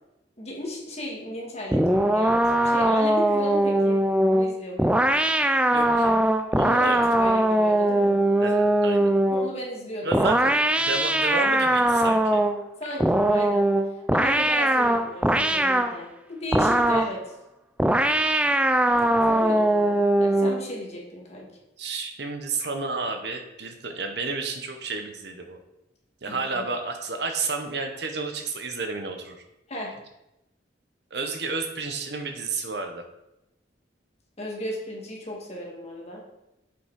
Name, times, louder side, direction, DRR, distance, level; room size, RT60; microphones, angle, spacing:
voice 1, 0.4-4.0 4.3-5.1 6.6-8.2 9.3-10.3 12.8-13.6 13.9-17.4 19.2-21.5 26.3-26.6 29.7-29.9 34.4-36.2, equal, 35° left, -2 dB, 1.9 m, -35 dB
sound 1, 1.7-9.5 10.1-12.6 13.0-16.0 16.5-17.2 17.8-20.6, right 1 dB, 5° right, 0.3 m, -21 dB
voice 2, 5.7-7.3 8.4-9.1 10.0-12.4 21.8-25.6 26.2-29.4 31.1-33.0, right 3 dB, 65° right, 5 dB, 1.0 m, -31 dB
7.1 x 5.5 x 4.7 m, 0.91 s
head